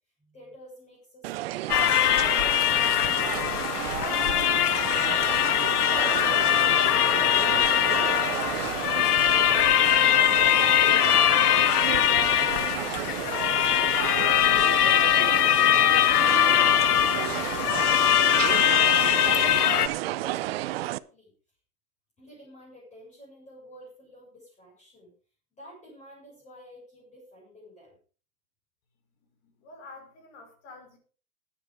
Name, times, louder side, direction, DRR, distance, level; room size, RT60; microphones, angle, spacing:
voice 1, 0.2-3.5 3.9-6.3 6.7-10.4 10.7-14.0 14.4-17.9 18.3-21.3 22.2-25.1 25.5-28.0, equal, 15° left, 6.9 m, -50 dB
sound 1, 1.2-21.0, right 16 dB, 45° right, 0.6 m, -32 dB
sound 2, 1.7-19.9, left 12 dB, 85° left, 1.0 m, -22 dB
voice 2, 29.4-31.0, left 3 dB, 40° left, 5.1 m, -48 dB
12.5 x 9.9 x 5.0 m
hypercardioid pair, 150°, 45 cm